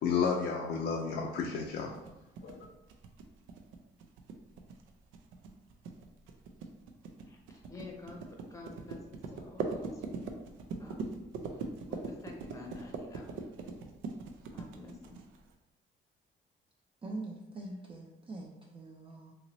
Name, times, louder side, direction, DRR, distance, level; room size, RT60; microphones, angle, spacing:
voice 1, 0.0-1.9 2.4-2.7, left 6 dB, 60° left, -1 dB, 0.4 m, -32 dB
sound 1, 1.8-15.5, right 4 dB, 80° right, 0.4 m, -41 dB
voice 2, 7.3-8.2 8.5-10.3 10.8-11.2 11.9-13.4 14.5-15.2, left 3 dB, 15° left, 1 dB, 0.7 m, -49 dB
voice 3, 17.0-19.3, right 2 dB, 25° right, -1 dB, 0.4 m, -43 dB
2.8 x 2.7 x 2.9 m, 0.95 s
cardioid pair, 90°, 20 cm